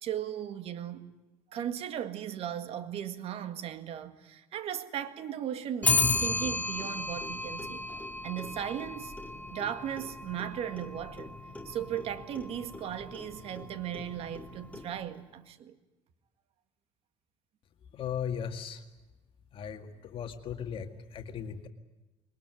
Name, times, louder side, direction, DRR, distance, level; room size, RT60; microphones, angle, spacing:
voice 1, 0.0-1.1 1.5-7.9 8.2-9.1 9.5-11.3 11.7-15.8, right 10 dB, 55° right, 1.9 m, -37 dB
Clock, 5.8-15.2, left 3 dB, 10° left, 2.5 m, -34 dB
voice 2, 17.9-18.8 19.5-21.7, left 8 dB, 50° left, 2.0 m, -37 dB
22.0 x 20.5 x 9.4 m
cardioid pair, 105°, 12 cm